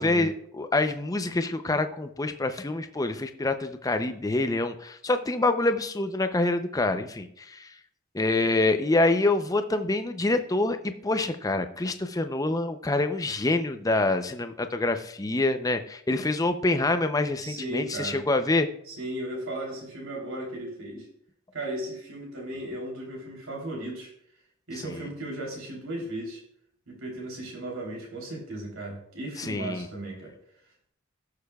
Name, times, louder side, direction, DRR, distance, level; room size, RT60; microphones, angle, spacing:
voice 1, 0.0-7.7 8.1-18.7 24.8-25.1 29.4-29.9, left 2 dB, 15° left, 8 dB, 0.5 m, -26 dB
voice 2, 17.4-18.2 18.9-21.1 21.5-24.1 24.7-26.4 26.9-30.3, right 1 dB, 80° right, -2 dB, 3.3 m, -36 dB
17.5 x 6.7 x 2.3 m, 0.70 s
head